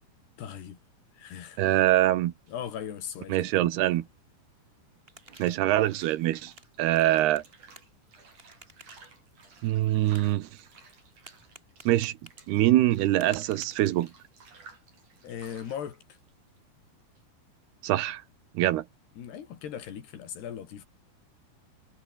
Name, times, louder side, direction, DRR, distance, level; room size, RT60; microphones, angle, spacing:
voice 1, 0.4-0.8 1.1-1.6 2.5-3.7 15.2-16.0 19.2-20.9, left 9 dB, 80° left, 4.9 m, -38 dB
voice 2, 1.6-2.3 3.3-4.0 5.4-6.5 6.8-7.4 9.6-10.5 11.9-12.1 12.5-14.1 17.8-18.2 18.5-18.8, right 14 dB, 80° right, 3.1 m, -24 dB
sound 1, 2.5-17.2, right 4 dB, 50° right, 7.0 m, -56 dB
sound 2, 4.8-14.4, right 1 dB, 15° right, 7.3 m, -56 dB
omnidirectional pair, 4.7 m